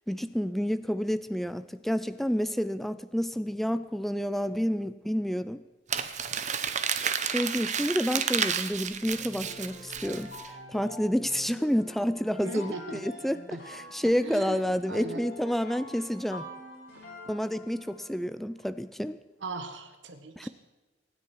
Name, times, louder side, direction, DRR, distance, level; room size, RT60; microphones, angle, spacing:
voice 1, 0.1-5.6 7.2-10.3 10.7-16.5 17.3-19.2 20.4-20.5, equal, ahead, 12 dB, 0.4 m, -29 dB
Crumpling crinkling, 5.9-10.5, right 7 dB, 40° right, 0.9 m, -31 dB
sound 1, 9.0-18.2, left 1 dB, 55° left, 6.8 m, -46 dB
voice 2, 12.4-13.0 13.5-13.6 14.2-14.6 14.9-15.2 19.4-20.5, right 2 dB, 80° right, 7 dB, 1.6 m, -38 dB
24.5 x 9.9 x 4.7 m, 1.2 s
head